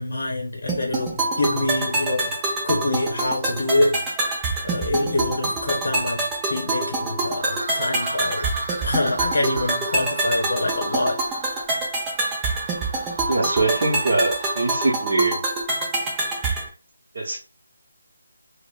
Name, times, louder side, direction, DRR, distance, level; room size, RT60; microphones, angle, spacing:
voice 1, 0.0-2.3 2.6-4.0 4.6-8.5 8.8-11.2, left 2 dB, 45° left, 0.9 m, -25 dB
sound 1, 0.7-16.7, right 2 dB, 10° right, 0.5 m, -26 dB
sound 2, 7.4-15.0, right 2 dB, 60° right, 0.6 m, -36 dB
voice 2, 13.3-15.4 17.1-17.4, right 3 dB, 35° right, 0.9 m, -22 dB
4.8 x 2.1 x 2.4 m
figure-of-eight pair, 175°, 0 cm